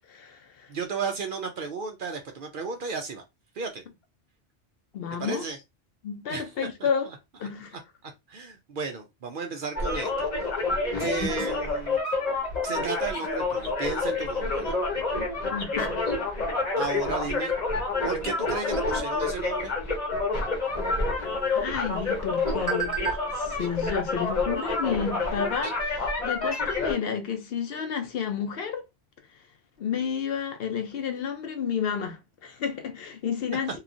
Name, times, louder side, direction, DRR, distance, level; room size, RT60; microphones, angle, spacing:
voice 1, 0.1-0.7 4.9-5.4 6.0-7.1 7.4-7.8 12.7-12.8 15.5-16.0 21.5-28.9 29.8-33.8, left 7 dB, 65° left, 0.7 m, -31 dB
voice 2, 0.7-3.2 3.5-3.8 5.2-5.6 6.3-6.7 8.0-10.5 11.0-12.0 12.6-14.7 16.8-17.5 18.0-19.7 33.7-33.8, right 4 dB, 60° right, 0.6 m, -33 dB
sound 1, 9.8-26.9, left 3 dB, 40° left, 1.0 m, -28 dB
sound 2, 20.7-25.7, right 7 dB, 20° right, 0.9 m, -39 dB
2.9 x 2.3 x 2.5 m
omnidirectional pair, 1.2 m